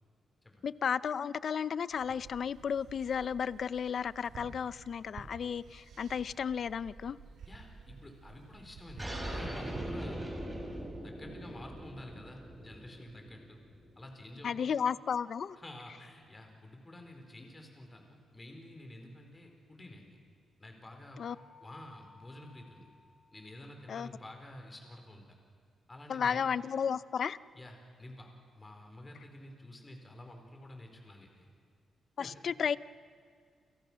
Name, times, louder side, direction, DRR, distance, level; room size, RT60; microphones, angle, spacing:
voice 1, 0.6-7.2 14.4-15.6 21.2-21.4 23.9-24.1 26.1-27.4 32.2-32.8, left 7 dB, 50° left, 17 dB, 0.6 m, -33 dB
sound 1, 1.9-9.9, right 4 dB, 85° right, 3.2 m, -52 dB
voice 2, 7.4-10.2 11.0-13.6 14.0-14.7 15.6-20.2 20.6-21.2 21.6-22.9 23.3-25.4 25.9-26.5 27.5-28.3 28.6-31.5 32.2-32.3, left 1 dB, 15° left, 3 dB, 4.5 m, -50 dB
sound 2, 9.0-14.0, right 1 dB, 10° right, 5.6 m, -41 dB
sound 3, 21.3-24.1, left 3 dB, 85° left, 5.4 m, -61 dB
30.0 x 28.5 x 6.3 m, 2.2 s
wide cardioid pair, 155°, 0 cm